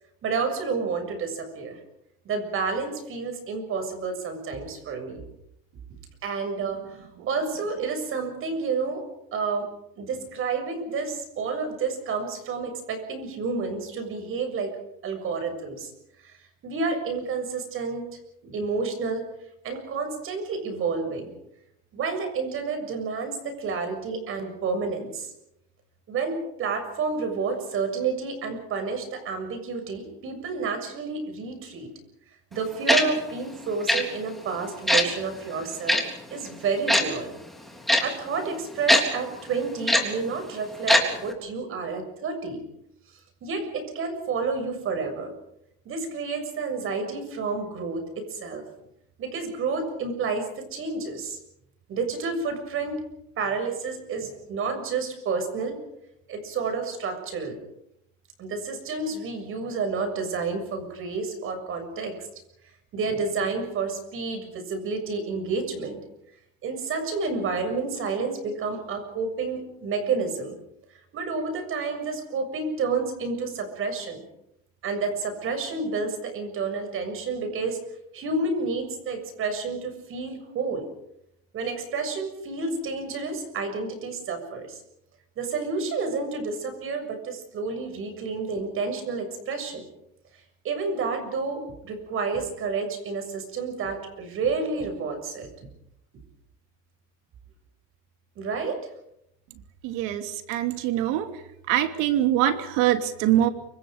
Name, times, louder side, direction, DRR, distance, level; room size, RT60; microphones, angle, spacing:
voice 1, 0.2-1.8 2.3-5.2 6.2-9.0 9.3-14.8 15.0-15.9 16.2-16.4 16.6-18.0 18.4-19.2 19.6-21.3 21.9-25.3 26.1-31.9 32.5-37.3 38.0-42.6 43.4-45.3 45.9-48.6 49.2-51.4 51.9-53.0 53.4-55.8 56.3-57.6 58.4-62.3 62.9-66.0 66.6-70.6 71.1-74.2 74.8-77.8 78.1-80.8 81.5-84.8 85.4-89.9 90.6-95.5 98.4-98.8, right 4 dB, 45° right, 7 dB, 7.0 m, -30 dB
Tick-tock, 32.9-33.0 33.9-34.0 34.9-35.0 35.9-36.0 36.9-37.0 37.9-38.0 38.9-39.0 39.9-40.0 40.9-41.0 41.3-41.4, left 1 dB, ahead, 3.6 m, -19 dB
voice 2, 99.8-101.4 101.7-103.5, right 12 dB, 85° right, 7 dB, 2.8 m, -24 dB
28.0 x 25.5 x 5.2 m, 0.79 s
cardioid pair, 155°, 31 cm